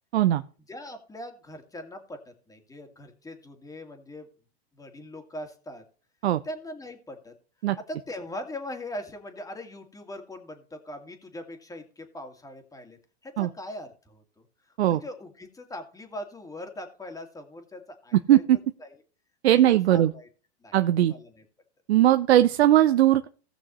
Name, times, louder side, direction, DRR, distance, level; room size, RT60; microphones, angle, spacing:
voice 1, 0.7-4.3 4.7-5.8 6.4-7.3 7.9-18.4 18.8-19.0 19.5-20.3 20.6-21.4, left 1 dB, 10° left, 5 dB, 2.1 m, -41 dB
voice 2, 19.4-20.1 20.7-21.1 21.9-23.3, right 13 dB, 80° right, 10 dB, 0.7 m, -19 dB
17.5 x 6.1 x 3.1 m, 0.40 s
hypercardioid pair, 105°, 32 cm